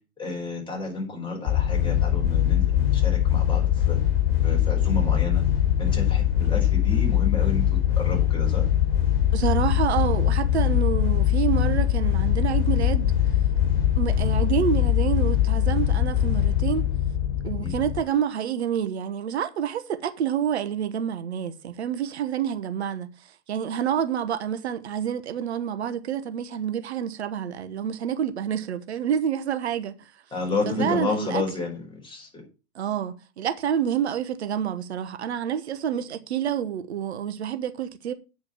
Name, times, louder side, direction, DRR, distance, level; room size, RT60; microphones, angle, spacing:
voice 1, 0.2-4.0 4.4-5.4 5.8-8.7 17.5-17.7 30.3-32.5, left 3 dB, 15° left, 5.0 m, -31 dB
sound 1, 1.5-18.0, left 11 dB, 35° left, 4.6 m, -22 dB
voice 2, 9.3-13.1 13.9-16.8 17.4-23.1 23.5-30.1 30.7-31.4 32.7-38.1, right 9 dB, 80° right, 1.2 m, -28 dB
8.9 x 5.2 x 6.8 m
hypercardioid pair, 115°, 33 cm